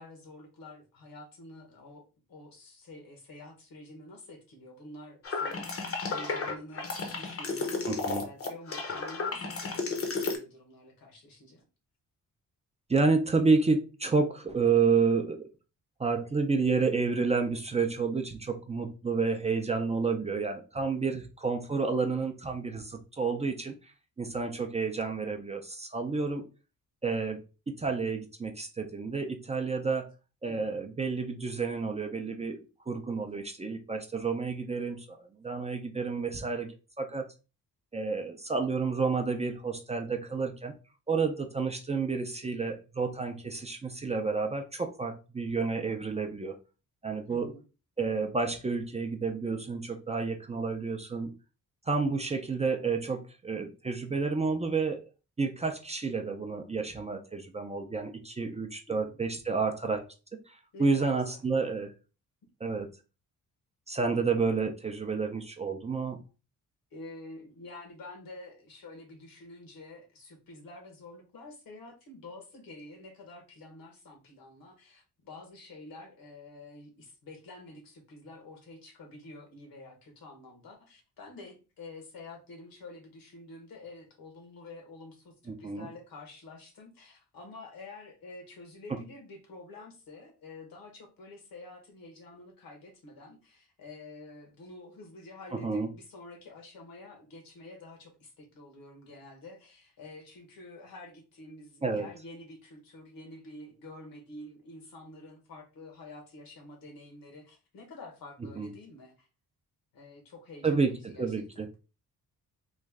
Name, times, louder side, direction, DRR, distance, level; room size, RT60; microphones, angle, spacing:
voice 1, 0.0-2.0 2.3-11.6 30.5-30.7 47.3-47.6 58.9-59.2 60.7-61.4 66.9-109.3 109.9-111.7, left 2 dB, 80° left, 3 dB, 1.2 m, -48 dB
sound 1, 5.2-10.4, left 4 dB, 40° left, 0.7 m, -33 dB
voice 2, 7.9-8.2 12.9-15.5 16.0-23.7 24.2-26.4 27.0-27.4 27.8-30.1 30.4-32.6 32.9-36.7 37.0-37.3 37.9-40.8 41.1-46.6 47.0-47.5 48.0-51.3 51.9-55.0 55.4-60.0 60.5-61.9 62.6-62.9 63.9-66.2 85.6-85.9 88.9-89.0 95.6-95.9 101.8-102.1 108.6-108.7 110.6-111.7, right 4 dB, 20° right, 5 dB, 0.4 m, -30 dB
3.1 x 2.4 x 3.5 m, 0.31 s
wide cardioid pair, 135°, 34 cm